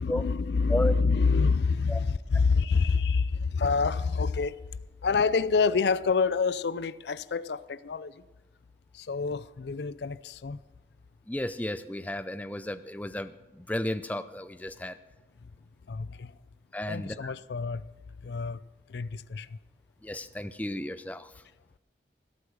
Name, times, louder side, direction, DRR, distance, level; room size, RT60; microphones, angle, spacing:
voice 1, 0.0-4.6 5.0-8.2 8.9-10.6 15.9-16.3 16.9-17.8 18.2-18.6 18.9-19.6, left 4 dB, 70° left, 0.5 m, -27 dB
voice 2, 11.3-15.0 16.7-17.3 20.0-21.3, left 1 dB, 10° left, 0.5 m, -33 dB
17.0 x 8.4 x 6.4 m
head